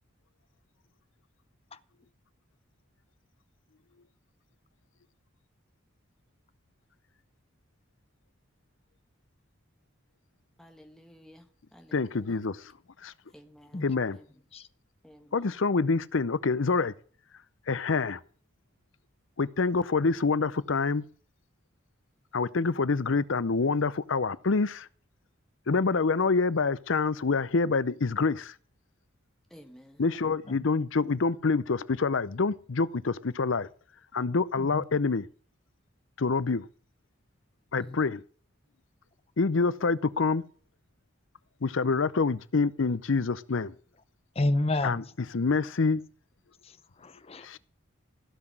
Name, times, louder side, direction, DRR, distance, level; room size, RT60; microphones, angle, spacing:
voice 1, 10.6-11.5 11.7-12.4 13.3-14.3 15.0-15.6 29.5-30.0 37.8-38.0, equal, ahead, 1.3 m, -54 dB
voice 2, 11.9-12.6 13.0-13.1 13.8-14.2 15.3-16.9 17.7-18.2 19.4-21.0 22.3-24.9 25.7-28.5 30.0-33.6 34.1-35.3 36.2-36.6 37.7-38.2 39.4-40.4 41.6-43.7 44.8-45.0 45.3-46.0, left 4 dB, 70° left, 0.6 m, -26 dB
voice 3, 37.7-38.1 44.3-45.1 46.6-47.6, left 2 dB, 30° left, 0.6 m, -31 dB
16.0 x 6.0 x 7.7 m
head